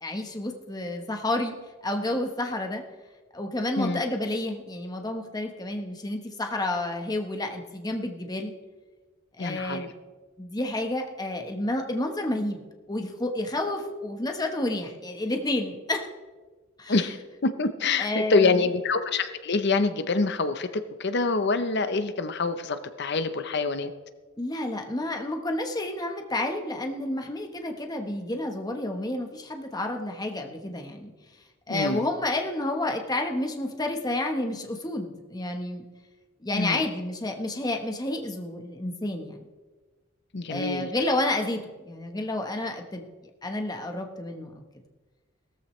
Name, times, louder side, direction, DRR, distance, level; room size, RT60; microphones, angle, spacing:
voice 1, 0.0-1.5 1.8-2.8 3.3-8.5 9.4-9.9 10.4-16.0 16.8-17.1 18.0-18.6 24.4-31.1 31.7-35.8 36.4-39.5 40.5-43.0 43.4-44.6, left 1 dB, 20° left, 4 dB, 1.2 m, -30 dB
voice 2, 9.4-9.9 16.9-17.2 17.4-23.9 31.7-32.0 36.5-36.9 40.3-40.9, left 3 dB, 55° left, 10 dB, 0.8 m, -26 dB
16.5 x 13.5 x 3.2 m, 1.3 s
head